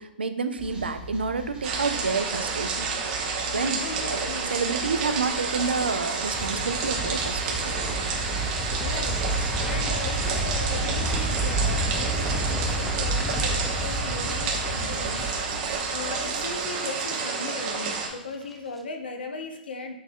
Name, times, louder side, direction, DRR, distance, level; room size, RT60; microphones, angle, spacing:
voice 1, 0.0-2.9 3.5-3.8 4.0-7.7, right 4 dB, 85° right, 9 dB, 0.4 m, -29 dB
sound 1, 0.6-16.6, equal, 20° right, 1.1 m, -42 dB
sound 2, 1.6-18.1, right 4 dB, 45° right, 0.9 m, -30 dB
voice 2, 3.5-4.6 8.8-9.2 9.6-19.9, left 3 dB, 75° left, 5 dB, 0.7 m, -37 dB
sound 3, 6.3-17.5 17.7-18.1 18.4-18.5, right 1 dB, ahead, 0.4 m, -30 dB
6.5 x 2.7 x 2.3 m, 0.83 s
hypercardioid pair, 120°, 5 cm